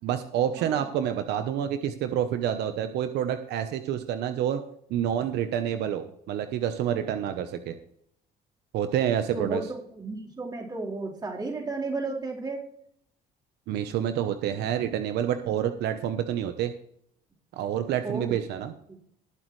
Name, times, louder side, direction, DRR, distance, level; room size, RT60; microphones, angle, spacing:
voice 1, 0.0-4.6 4.9-7.8 8.7-9.6 13.7-16.7 17.5-18.7, right 10 dB, 80° right, 8 dB, 1.1 m, -28 dB
voice 2, 9.9-12.6 18.0-18.4 18.9-19.0, right 3 dB, 25° right, -3 dB, 4.4 m, -33 dB
20.0 x 7.7 x 3.3 m, 0.68 s
cardioid pair, 110°, 17 cm